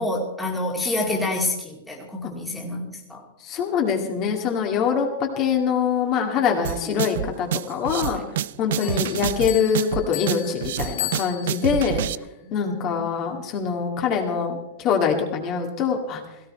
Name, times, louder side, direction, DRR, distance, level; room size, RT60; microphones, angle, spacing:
voice 1, 0.0-3.2 6.9-7.0 8.1-8.3 8.8-9.1 12.6-13.1, left 2 dB, 5° left, -1 dB, 2.3 m, -28 dB
voice 2, 3.4-8.2 8.6-12.0 12.5-16.2, left 7 dB, 35° left, 2 dB, 2.2 m, -24 dB
sound 1, 6.6-12.1, right 11 dB, 70° right, 0.5 m, -28 dB
Bell, 8.8-11.9, left 13 dB, 70° left, 2.9 m, -35 dB
17.5 x 16.0 x 4.4 m, 0.86 s
supercardioid pair, 160°, 0 cm